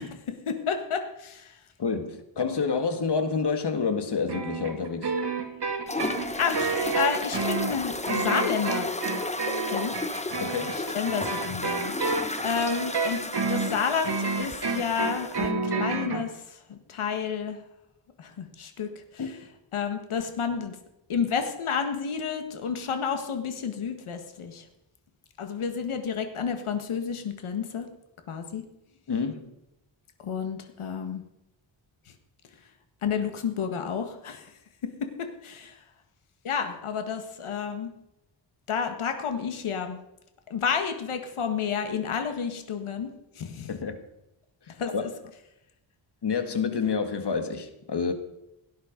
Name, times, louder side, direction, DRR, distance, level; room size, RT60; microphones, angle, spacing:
voice 1, 0.0-1.6 5.9-8.9 9.7-10.0 10.7-17.6 18.2-19.4 19.7-20.8 21.1-24.7 25.4-27.9 28.3-28.6 30.2-31.2 32.1-32.2 33.0-34.5 35.2-35.8 36.4-37.9 38.7-40.0 40.5-43.7 44.7-45.1, left 6 dB, 90° left, 6 dB, 1.8 m, -31 dB
voice 2, 1.8-5.2 10.4-10.8 19.2-19.3 29.1-29.5 43.7-44.0 44.9-45.0 46.2-48.1, left 5 dB, 55° left, 8 dB, 1.9 m, -28 dB
sound 1, 4.3-16.2, right 4 dB, 55° right, 2.5 m, -30 dB
sound 2, 5.9-15.5, left 2 dB, 15° left, 1.0 m, -33 dB
17.5 x 10.5 x 5.2 m, 0.86 s
wide cardioid pair, 110°, 48 cm